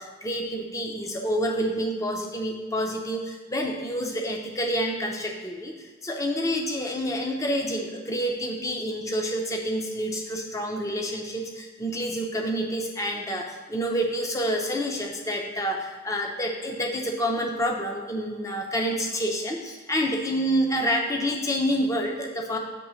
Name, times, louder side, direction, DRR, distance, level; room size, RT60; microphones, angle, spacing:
voice 1, 0.0-22.6, equal, 15° left, 1 dB, 0.6 m, -28 dB
8.2 x 3.2 x 6.2 m, 1.4 s
head